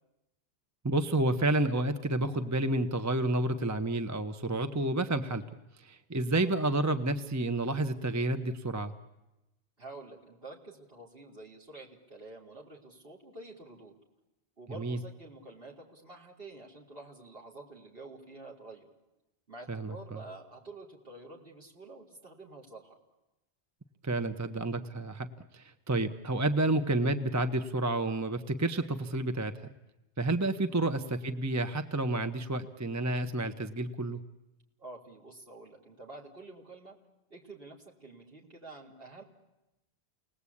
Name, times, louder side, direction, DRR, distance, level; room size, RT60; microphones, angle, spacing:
voice 1, 0.8-5.4 5.8-8.9 14.8-15.0 19.7-19.9 24.0-25.3 25.5-29.7 30.2-34.2, right 2 dB, 15° right, 9 dB, 0.8 m, -30 dB
voice 2, 9.8-14.0 14.6-18.9 19.5-23.0 30.7-30.9 34.8-37.0 37.3-39.2, right 2 dB, 55° right, -3 dB, 3.9 m, -49 dB
29.0 x 19.5 x 8.5 m, 0.99 s
omnidirectional pair, 1.1 m